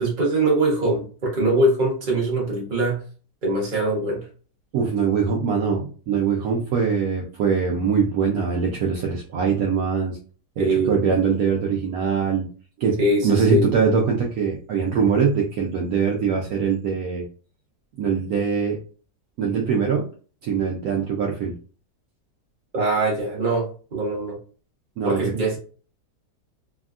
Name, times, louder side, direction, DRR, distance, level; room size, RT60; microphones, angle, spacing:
voice 1, 0.0-3.0 3.4-4.3 10.6-11.0 13.0-13.6 22.7-24.4 25.0-25.6, right 2 dB, 35° right, -3 dB, 1.0 m, -22 dB
voice 2, 4.7-10.2 10.6-12.5 12.8-17.2 18.0-18.8 19.4-20.0 20.4-21.5 25.0-25.2, right 6 dB, 70° right, -1 dB, 1.0 m, -22 dB
3.4 x 2.2 x 2.4 m, 0.39 s
omnidirectional pair, 1.8 m